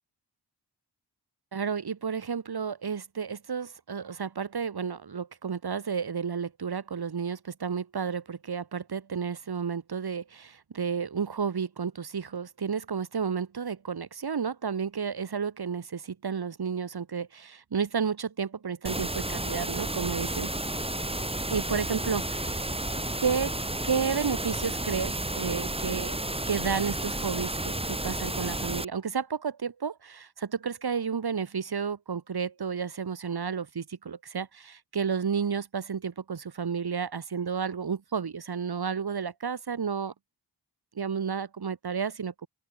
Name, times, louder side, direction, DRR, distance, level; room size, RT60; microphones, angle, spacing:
voice 1, 1.5-20.5 21.5-22.2 23.2-23.5 23.8-26.2 26.5-40.1 41.0-42.5, right 6 dB, 65° right, 2.4 m, -31 dB
sound 1, 18.8-28.8, right 1 dB, 15° right, 3.3 m, -32 dB
open air
wide cardioid pair, 115°, 41 cm